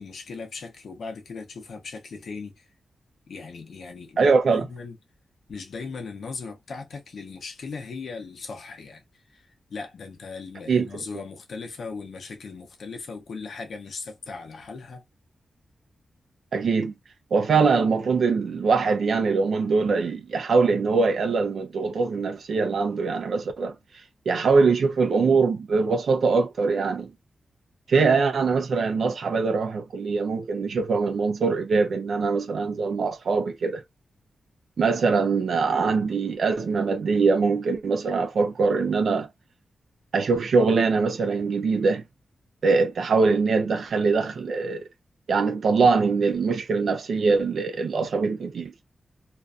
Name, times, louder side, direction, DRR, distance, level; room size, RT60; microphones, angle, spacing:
voice 1, 0.0-2.7 3.3-5.0 5.5-9.0 9.3-15.0, left 4 dB, 70° left, 0.7 m, -38 dB
voice 2, 4.2-4.7 10.7-11.0 16.5-16.9 17.3-23.7 24.3-27.1 27.9-33.8 34.8-39.3 40.1-42.0 42.6-44.8 45.3-48.7, right 4 dB, 70° right, 0.4 m, -22 dB
2.5 x 2.3 x 2.4 m
wide cardioid pair, 145°, 0 cm